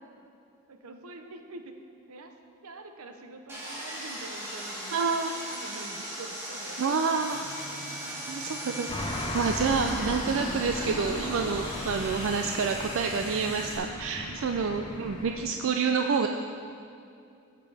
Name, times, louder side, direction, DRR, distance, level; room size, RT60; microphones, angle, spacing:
voice 1, 0.7-1.8 2.1-2.4 2.6-5.0 5.3-7.3, right 2 dB, 80° right, 5 dB, 0.8 m, -46 dB
Sawing, 3.5-13.8, right 1 dB, 10° right, 1.8 m, -38 dB
voice 2, 4.9-5.3 6.8-7.4 8.3-8.9 9.3-16.3, right 5 dB, 60° right, 4 dB, 0.4 m, -28 dB
sound 1, 7.3-15.6, right 1 dB, 35° right, 0.7 m, -46 dB
sound 2, 8.9-15.4, left 1 dB, 25° left, 0.8 m, -36 dB
15.5 x 6.7 x 3.4 m, 2.6 s
head